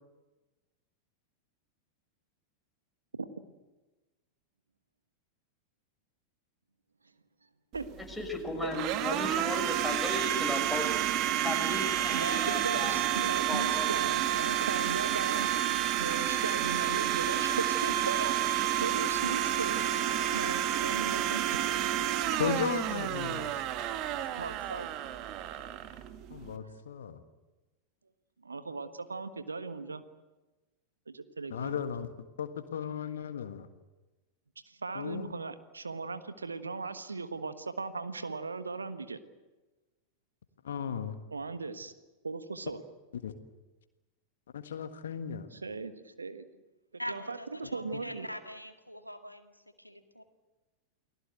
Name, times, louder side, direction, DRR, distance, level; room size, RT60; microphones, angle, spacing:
Domestic sounds home sounds, 7.7-26.6, right 12 dB, 40° right, 1.5 m, -30 dB
voice 1, 8.1-11.1 11.4-13.0 13.5-14.1, left 2 dB, ahead, 0 dB, 5.9 m, -36 dB
voice 2, 12.1-19.9 20.3-21.6 24.3-24.9 28.4-30.0 31.1-31.7 34.7-39.2 41.3-41.9 42.2-42.8 45.5-46.5 47.1-47.4 47.7-48.3, right 4 dB, 75° right, 11 dB, 1.4 m, -38 dB
voice 3, 22.4-23.6 26.3-27.2 31.5-32.1 32.4-33.7 34.9-35.3 40.6-41.2 43.1-43.3 44.5-45.5, left 8 dB, 65° left, 9 dB, 1.6 m, -35 dB
voice 4, 47.0-50.2, equal, 90° left, 6 dB, 2.0 m, -43 dB
29.5 x 19.5 x 8.0 m, 1.1 s
figure-of-eight pair, 90°, 0 cm